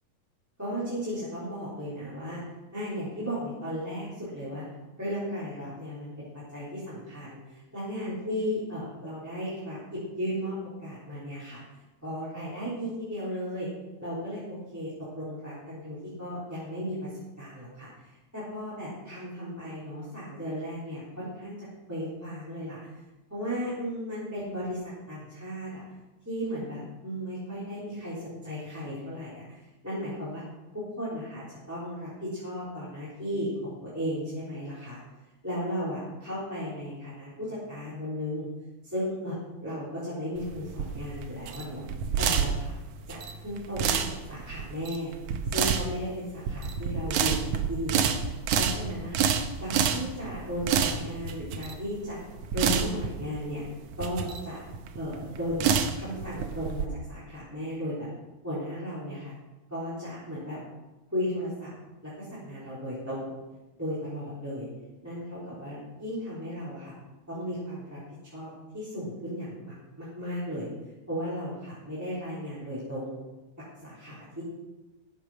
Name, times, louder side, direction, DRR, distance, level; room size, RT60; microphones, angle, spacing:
voice 1, 0.6-2.4 2.7-4.6 5.0-10.6 10.8-11.6 12.0-13.7 14.0-22.8 23.3-24.8 25.1-25.8 26.3-29.6 29.8-30.4 30.7-35.0 35.4-38.5 38.8-39.4 39.6-41.8 42.2-42.7 43.1-44.0 44.3-45.1 45.5-48.1 48.5-49.3 49.6-52.2 52.5-53.6 54.0-54.6 55.0-55.7 56.0-58.1 58.4-59.3 59.7-60.6 61.1-61.7 62.0-63.3 63.8-64.7 65.0-66.9 67.3-68.0 68.2-70.7 71.1-73.2 73.8-74.4, equal, 5° right, -10 dB, 3.6 m, -35 dB
sound 1, 40.4-56.8, right 7 dB, 70° right, 1.8 m, -29 dB
14.5 x 6.8 x 6.2 m, 1.1 s
omnidirectional pair, 3.4 m